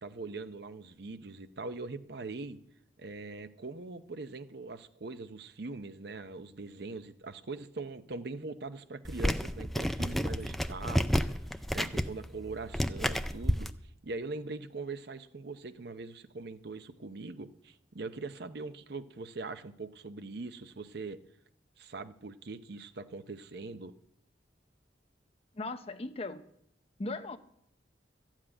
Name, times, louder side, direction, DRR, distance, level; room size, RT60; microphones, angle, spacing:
voice 1, 0.0-2.6 3.0-11.3 11.7-13.7 14.0-21.2 21.8-23.9, right 3 dB, 60° right, 11 dB, 0.7 m, -42 dB
sound 1, 9.0-13.7, equal, ahead, 0.4 m, -31 dB
voice 2, 25.5-26.4 27.0-27.4, left 2 dB, 30° left, 9 dB, 0.7 m, -37 dB
13.0 x 7.4 x 8.7 m, 0.73 s
head